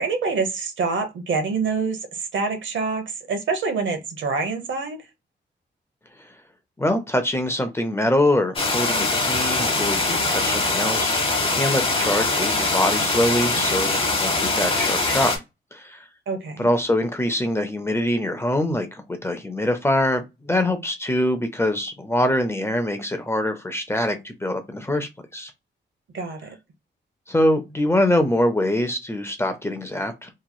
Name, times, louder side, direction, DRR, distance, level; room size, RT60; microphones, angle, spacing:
voice 1, 0.0-5.0 16.3-16.7 26.1-26.6, right 4 dB, 80° right, 0.8 m, -26 dB
voice 2, 6.8-15.4 15.7-16.0 16.6-25.5 27.3-30.3, left 1 dB, 15° left, 0.4 m, -24 dB
sound 1, 8.6-15.4, left 3 dB, 30° left, 0.8 m, -22 dB
3.0 x 2.8 x 2.2 m
wide cardioid pair, 170°, 19 cm